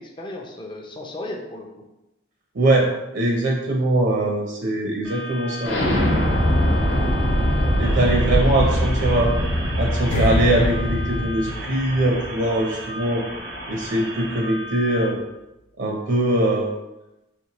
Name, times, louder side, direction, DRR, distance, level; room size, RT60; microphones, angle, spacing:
voice 1, 0.0-1.7 7.4-8.4, left 1 dB, 25° left, 0 dB, 0.5 m, -36 dB
voice 2, 2.5-5.8 7.8-9.3 9.8-13.2 13.7-15.2 15.8-16.7, right 1 dB, 65° right, 0 dB, 0.6 m, -22 dB
sound 1, 5.0-15.1, equal, 90° right, 1.1 m, -35 dB
Explosion, 5.6-11.2, equal, 70° left, 1.0 m, -21 dB
sound 2, 10.1-13.3 13.6-13.8, left 1 dB, 85° left, 0.5 m, -27 dB
4.4 x 3.1 x 2.9 m, 0.94 s
head